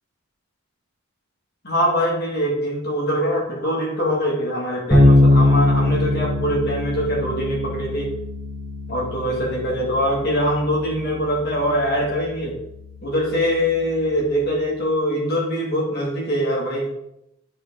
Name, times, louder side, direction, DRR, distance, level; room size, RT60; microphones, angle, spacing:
voice 1, 1.6-8.1 8.9-12.6 13.0-16.9, equal, 45° left, -2 dB, 2.1 m, -23 dB
Bass guitar, 4.9-14.6, left 1 dB, 5° left, 1.6 m, -22 dB
11.0 x 4.4 x 3.7 m, 0.83 s
head